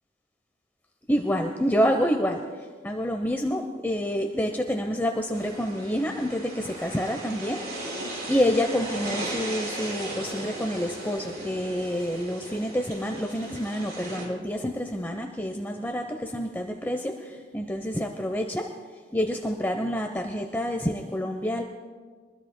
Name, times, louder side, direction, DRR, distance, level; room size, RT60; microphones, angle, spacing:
voice 1, 1.1-2.4 2.8-8.0 8.3-18.7 19.1-21.6, equal, 10° left, 3 dB, 0.7 m, -28 dB
sound 1, 5.3-14.2, right 1 dB, 60° right, 6.0 m, -37 dB
24.5 x 21.0 x 2.2 m, 1.5 s
head